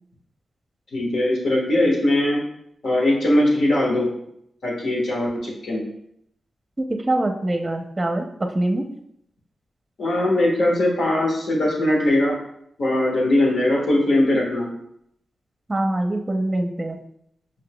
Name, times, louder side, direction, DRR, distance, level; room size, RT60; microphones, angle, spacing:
voice 1, 0.9-2.4 2.8-4.1 4.6-5.8 10.0-12.3 12.8-14.7, left 1 dB, 75° left, -2 dB, 1.4 m, -20 dB
voice 2, 6.8-8.2 8.5-8.8 15.7-17.0, right 1 dB, 30° right, 5 dB, 0.6 m, -23 dB
5.7 x 3.7 x 2.2 m, 0.73 s
supercardioid pair, 45°, 0 cm